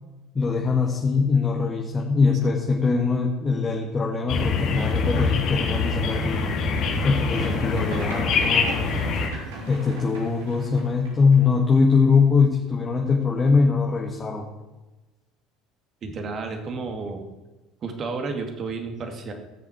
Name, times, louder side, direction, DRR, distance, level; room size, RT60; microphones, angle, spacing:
voice 1, 0.3-6.4 7.0-8.9 9.7-14.5, left 4 dB, 30° left, 0 dB, 1.9 m, -22 dB
sound 1, 4.3-9.3, left 4 dB, 55° left, 2.4 m, -24 dB
sound 2, 6.8-11.8, equal, 80° right, 3.6 m, -38 dB
voice 2, 16.0-17.3 17.8-19.3, right 4 dB, 45° right, 4 dB, 2.4 m, -31 dB
17.5 x 7.1 x 4.7 m, 1.1 s
hypercardioid pair, 70°, 0 cm